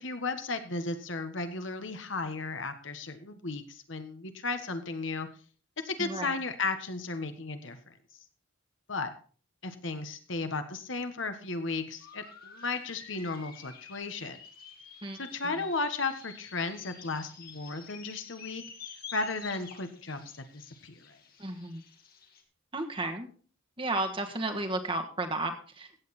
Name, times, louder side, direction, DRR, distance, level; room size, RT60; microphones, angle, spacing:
voice 1, 0.0-5.3 5.8-7.9 8.9-9.1 9.6-14.4 15.2-18.6 19.1-21.2, left 3 dB, 65° left, 8 dB, 1.4 m, -35 dB
voice 2, 6.0-6.4 15.0-15.2 15.4-15.6 21.4-21.8 22.7-23.3 23.8-26.0, right 2 dB, 25° right, 5 dB, 1.5 m, -33 dB
sound 1, 11.9-22.4, left 7 dB, 45° left, 2.2 m, -52 dB
sound 2, 12.0-19.4, left 6 dB, 80° left, 3.2 m, -52 dB
16.0 x 8.6 x 4.3 m, 0.41 s
head